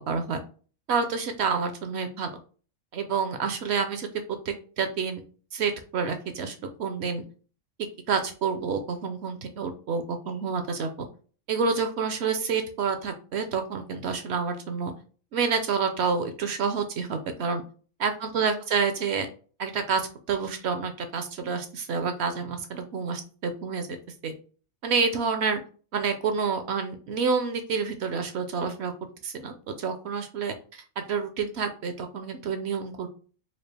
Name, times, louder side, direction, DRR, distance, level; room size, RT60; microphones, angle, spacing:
voice 1, 0.1-0.4 0.9-2.3 2.9-4.1 4.4-5.2 5.5-7.2 8.1-11.1 11.5-14.9 15.3-17.6 18.0-19.3 19.6-24.0 24.2-24.3 24.8-25.6 25.9-28.9 29.2-33.1, right 5 dB, 65° right, 7 dB, 0.7 m, -28 dB
4.4 x 2.3 x 3.3 m, 0.39 s
omnidirectional pair, 1.5 m